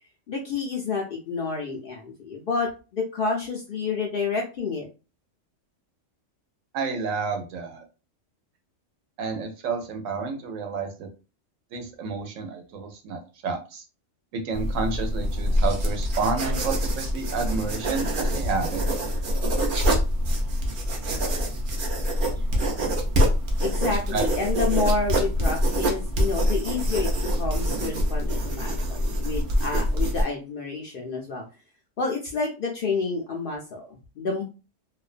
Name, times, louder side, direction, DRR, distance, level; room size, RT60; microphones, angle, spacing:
voice 1, 0.3-4.9 23.6-31.4 32.0-34.4, left 4 dB, 65° left, 0 dB, 0.5 m, -29 dB
voice 2, 6.7-7.8 9.2-11.1 11.7-13.8 14.3-18.9 24.1-24.3, right 4 dB, 80° right, 4 dB, 1.0 m, -30 dB
sound 1, 14.5-30.2, equal, 55° right, 0.6 m, -25 dB
2.5 x 2.1 x 2.4 m, 0.31 s
omnidirectional pair, 1.3 m